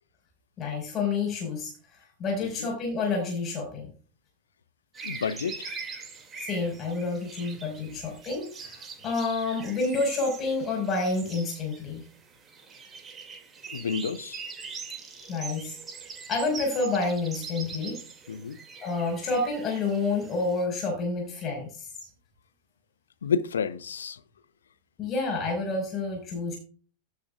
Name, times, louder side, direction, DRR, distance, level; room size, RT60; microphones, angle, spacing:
voice 1, 0.6-3.9 6.4-12.0 15.3-15.8 16.3-18.0 18.8-21.9 25.0-26.6, left 3 dB, 30° left, 5.1 m, -29 dB
sound 1, 4.9-20.6, right 5 dB, 20° right, 2.4 m, -42 dB
voice 2, 5.0-5.7 7.8-8.0 13.7-14.4 18.3-18.6 23.2-24.2, left 6 dB, 70° left, 0.9 m, -30 dB
16.0 x 8.4 x 2.4 m
figure-of-eight pair, 90°, 0 cm